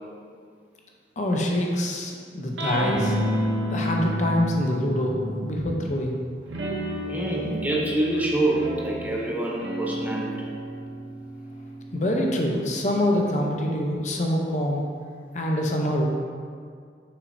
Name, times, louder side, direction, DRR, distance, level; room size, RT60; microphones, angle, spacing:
voice 1, 1.2-3.2 3.7-6.2 11.9-14.8 15.3-16.1, left 1 dB, 40° left, 0 dB, 0.6 m, -25 dB
sound 1, 2.6-5.9 6.5-13.3, equal, 90° right, 0.8 m, -31 dB
voice 2, 7.0-10.5, right 1 dB, 10° right, -3 dB, 0.6 m, -26 dB
6.4 x 6.1 x 2.6 m, 2.1 s
head